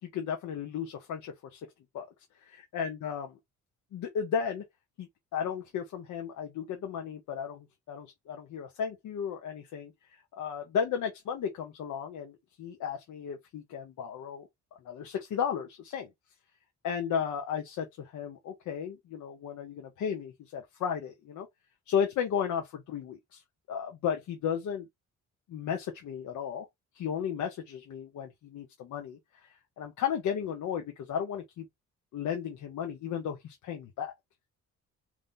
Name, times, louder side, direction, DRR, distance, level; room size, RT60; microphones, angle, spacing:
voice 1, 0.1-1.6 1.9-2.1 2.5-3.3 3.9-4.6 5.0-14.5 14.8-16.1 16.8-21.5 21.9-23.4 23.7-24.9 25.5-26.7 26.9-29.5 29.8-31.7 32.1-34.1, left 7 dB, 75° left, 1.1 m, -34 dB
3.8 x 3.1 x 4.0 m
cardioid pair, 90°, 30 cm